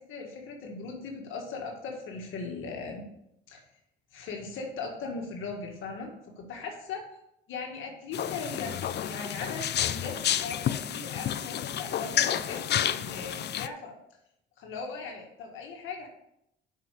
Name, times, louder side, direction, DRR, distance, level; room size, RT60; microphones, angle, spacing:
voice 1, 0.0-3.0 3.5-3.6 4.1-6.1 6.4-7.0 7.5-13.9 14.6-16.1, left 4 dB, 85° left, 1 dB, 1.9 m, -38 dB
sound 1, 8.1-13.7, left 10 dB, 60° left, 0.5 m, -30 dB
7.5 x 5.9 x 6.7 m, 0.80 s
cardioid pair, 90°, 20 cm